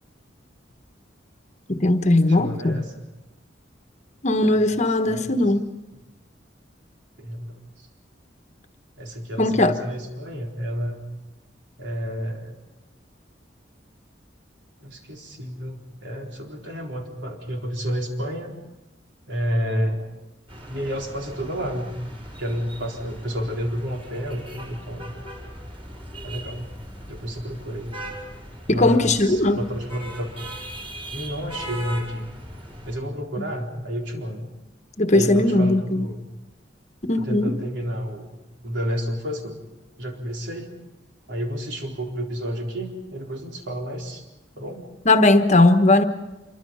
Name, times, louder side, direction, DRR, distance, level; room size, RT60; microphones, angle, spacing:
voice 1, 1.7-2.8 4.2-5.6 9.4-9.7 28.7-29.6 35.0-36.1 37.1-37.5 45.1-46.0, left 2 dB, 40° left, 1.2 m, -18 dB
voice 2, 2.3-3.1 4.4-4.6 5.0-5.4 7.2-7.9 9.0-11.1 11.8-12.6 14.8-18.6 19.3-20.1 20.7-22.0 22.4-25.1 26.2-26.7 27.1-27.9 28.7-30.3 31.1-32.3 32.9-34.5 35.1-36.2 37.2-39.6 40.0-40.7 41.3-44.2 44.6-44.9, equal, 70° right, 4.1 m, -30 dB
sound 1, 20.5-33.0, equal, 30° right, 6.2 m, -39 dB
26.5 x 23.5 x 5.6 m
head